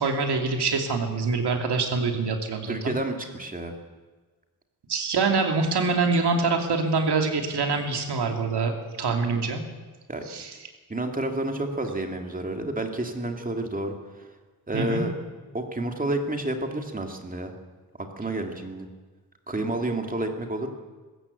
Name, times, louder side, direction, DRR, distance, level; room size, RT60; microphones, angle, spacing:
voice 1, 0.0-2.9 4.9-9.6 10.3-10.6 14.7-15.0, right 4 dB, 90° right, 3 dB, 2.9 m, -25 dB
voice 2, 2.7-3.8 9.1-9.2 10.1-10.2 10.9-13.9 14.7-15.1 15.5-17.5 18.2-18.9 19.5-20.7, right 2 dB, 20° right, 4 dB, 2.3 m, -30 dB
20.0 x 16.0 x 8.4 m, 1.3 s
wide cardioid pair, 165°, 39 cm